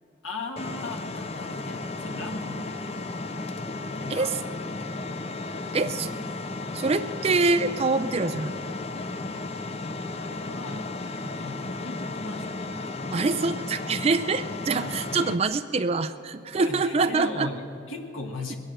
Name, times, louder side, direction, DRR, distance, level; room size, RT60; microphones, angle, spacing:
voice 1, 0.2-2.8 3.9-4.3 5.7-5.9 10.1-10.9 11.3-13.1 14.6-15.3 16.5-18.5, left 2 dB, 85° left, 3 dB, 1.5 m, -38 dB
sound 1, 0.6-15.4, left 2 dB, 30° left, 0.6 m, -34 dB
voice 2, 5.7-6.1 6.7-8.5 13.1-17.5, right 3 dB, 30° right, 7 dB, 0.4 m, -25 dB
20.5 x 8.6 x 7.6 m, 2.7 s
head